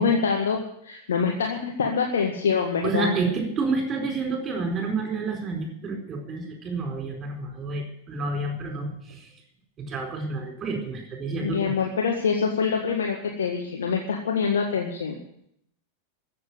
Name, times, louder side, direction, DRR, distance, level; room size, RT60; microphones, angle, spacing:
voice 1, 0.0-3.1 11.4-15.2, left 6 dB, 65° left, 1 dB, 1.9 m, -25 dB
voice 2, 2.8-9.3 9.8-11.8, right 3 dB, 25° right, 2 dB, 4.4 m, -29 dB
14.5 x 7.6 x 9.9 m, 0.72 s
figure-of-eight pair, 90°, 0 cm